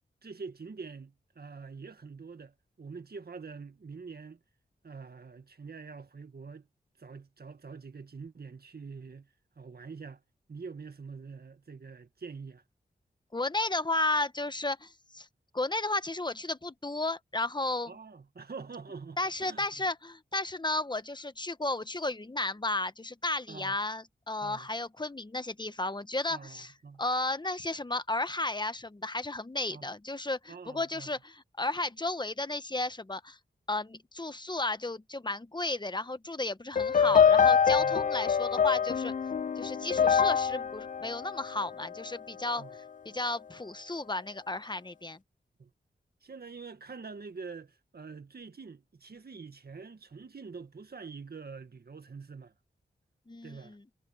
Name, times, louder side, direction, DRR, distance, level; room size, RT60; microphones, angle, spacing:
voice 1, 0.2-4.4 4.8-6.7 7.0-9.3 9.6-10.2 10.5-12.6 17.9-19.9 23.5-23.8 24.4-24.7 26.3-27.0 29.7-29.9 30.5-31.1 37.0-37.2 37.8-38.0 42.6-42.8 45.6-45.7 46.2-52.5 53.4-53.8, right 5 dB, 60° right, 1.8 m, -45 dB
voice 2, 13.3-15.3 15.5-17.9 19.2-26.7 27.0-33.4 33.7-39.1 39.6-42.6 43.0-45.2 53.3-53.8, left 2 dB, 25° left, 1.1 m, -33 dB
sound 1, 36.8-42.1, left 7 dB, 45° left, 0.4 m, -25 dB
cardioid pair, 60°, 18 cm